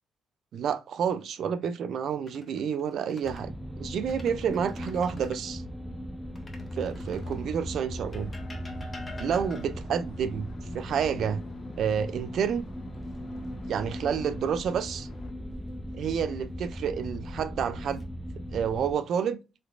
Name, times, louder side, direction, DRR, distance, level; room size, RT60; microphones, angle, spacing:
voice 1, 0.5-3.5 3.8-5.6 6.7-8.3 9.2-10.5 10.7-11.4 11.8-12.7 13.7-15.1 15.9-18.0 18.5-19.4, right 7 dB, 70° right, 0.4 m, -29 dB
sound 1, 2.1-3.5 3.9-5.5 6.3-7.5 8.1-9.9 11.8-12.5 12.9-13.2 16.1-16.7 17.4-18.0, left 2 dB, 25° left, 0.8 m, -48 dB
sound 2, 3.2-18.9, equal, ahead, 0.4 m, -38 dB
sound 3, 6.9-15.3, right 1 dB, 60° left, 0.8 m, -50 dB
3.3 x 2.8 x 2.5 m
cardioid pair, 90°, 0 cm